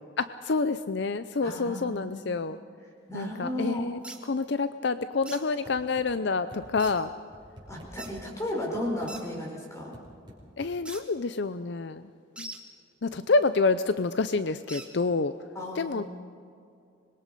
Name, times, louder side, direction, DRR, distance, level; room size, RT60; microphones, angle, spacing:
voice 1, 0.2-2.6 3.1-4.0 4.3-7.1 10.6-12.1 12.4-12.5 13.0-15.3 15.8-16.0, left 4 dB, 60° left, 12 dB, 0.5 m, -28 dB
voice 2, 1.4-2.4 3.1-3.9 7.7-9.9 15.5-16.0, left 1 dB, 15° left, -1 dB, 4.9 m, -34 dB
sound 1, 4.0-4.2 5.2-5.4 6.8-6.9 8.0-8.1 9.1-9.2 10.8-11.0 12.4-12.6 14.7-14.9, right 2 dB, 5° right, 1.4 m, -41 dB
sound 2, 5.6-6.1 6.5-6.8 7.3-8.2 8.7-9.1 9.9-10.7, equal, 25° right, 5.1 m, -48 dB
25.5 x 21.5 x 5.3 m, 2.4 s
head